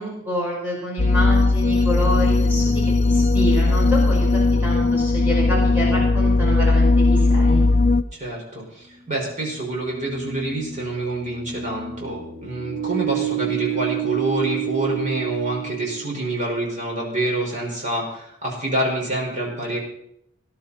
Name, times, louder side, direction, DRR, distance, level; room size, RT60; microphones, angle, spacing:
voice 1, 0.0-7.6, equal, 10° right, -5 dB, 5.5 m, -28 dB
sound 1, 1.0-8.0, left 3 dB, 30° left, 0.5 m, -18 dB
sound 2, 8.0-8.1 9.6-16.4, right 11 dB, 65° right, 4.5 m, -30 dB
voice 2, 8.1-19.8, right 2 dB, 35° right, -2 dB, 5.2 m, -27 dB
19.5 x 11.5 x 4.3 m, 0.74 s
head